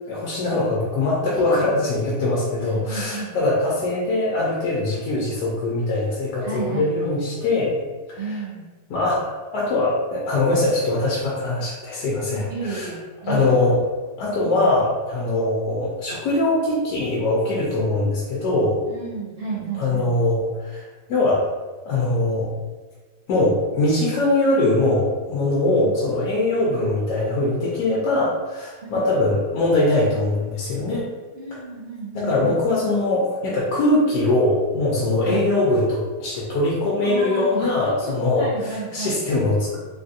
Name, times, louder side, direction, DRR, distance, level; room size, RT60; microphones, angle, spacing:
voice 1, 0.1-7.8 8.1-8.4 8.9-12.9 13.3-13.8 14.2-18.8 19.8-21.5 21.8-22.5 23.3-31.1 32.1-39.8, left 2 dB, 85° left, -5 dB, 1.2 m, -22 dB
voice 2, 1.3-1.7 2.6-3.4 6.4-7.4 8.2-8.6 12.3-13.6 14.3-14.5 18.9-20.1 25.8-25.9 28.8-29.1 31.3-32.6 35.2-35.5 37.0-38.1 38.4-39.2, right 4 dB, 50° right, -7 dB, 0.8 m, -32 dB
3.5 x 2.4 x 2.6 m, 1.3 s
omnidirectional pair, 1.8 m